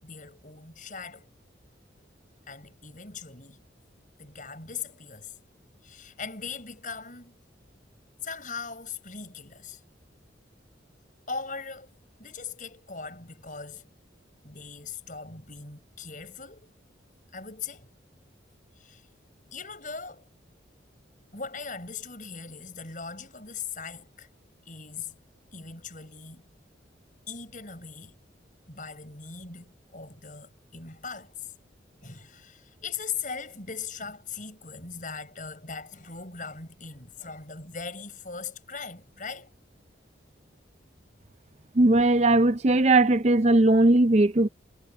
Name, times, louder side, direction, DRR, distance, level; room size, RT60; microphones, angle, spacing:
voice 1, 0.0-1.3 2.5-3.6 4.2-5.4 5.8-7.3 8.2-9.8 11.3-11.9 12.2-13.9 14.4-16.7 17.3-17.9 18.8-19.1 19.5-20.3 21.3-24.3 24.7-25.1 25.5-26.5 27.3-28.2 28.7-31.5 32.0-39.5, left 5 dB, 45° left, 7.4 m, -39 dB
voice 2, 41.8-44.5, right 2 dB, 35° right, 0.5 m, -19 dB
head